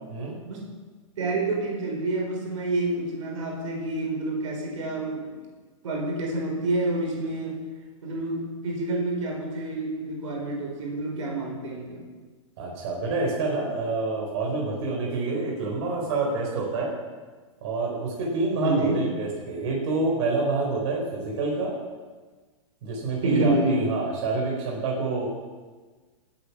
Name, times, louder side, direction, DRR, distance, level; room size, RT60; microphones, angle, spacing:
voice 1, 0.1-0.4 12.6-16.9 17.6-21.8 22.8-25.3, right 3 dB, 55° right, -2 dB, 4.2 m, -27 dB
voice 2, 1.2-5.4 5.8-7.6 8.0-12.1 18.6-19.0 23.2-23.8, right 2 dB, 75° right, 0 dB, 4.7 m, -28 dB
17.5 x 9.2 x 6.0 m, 1.4 s
hypercardioid pair, 130°, 17 cm